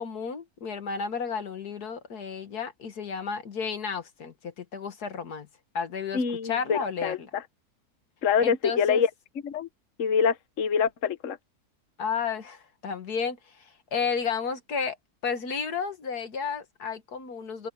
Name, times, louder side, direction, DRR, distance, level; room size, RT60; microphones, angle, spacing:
voice 1, 0.0-5.5 5.7-7.3 8.4-9.0 12.0-15.0 15.2-17.7, left 6 dB, 70° left, 2.1 m, -32 dB
voice 2, 6.1-7.4 8.2-9.1 9.4-9.7 10.0-11.4, left 6 dB, 55° left, 1.3 m, -25 dB
omnidirectional pair, 1.7 m